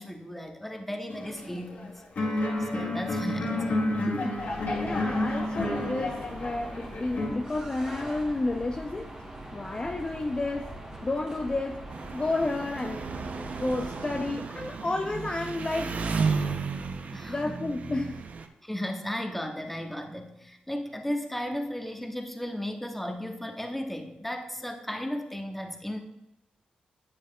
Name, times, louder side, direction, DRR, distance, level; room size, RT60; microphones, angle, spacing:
voice 1, 0.0-3.8 17.1-17.6 18.6-26.0, equal, 5° left, 1.2 m, -35 dB
sound 1, 1.1-1.8 2.2-7.3, left 1 dB, 60° left, 1.8 m, -30 dB
voice 2, 4.1-4.4 4.8-9.1 9.5-10.7 11.0-11.9 12.1-13.0 13.3-16.2 17.3-18.2, left 2 dB, 30° left, 0.5 m, -31 dB
sound 2, 4.3-14.2, right 1 dB, 25° right, 2.3 m, -42 dB
Engine, 11.9-18.5, right 5 dB, 60° right, 0.6 m, -33 dB
9.6 x 7.1 x 2.3 m
supercardioid pair, 50°, 3 cm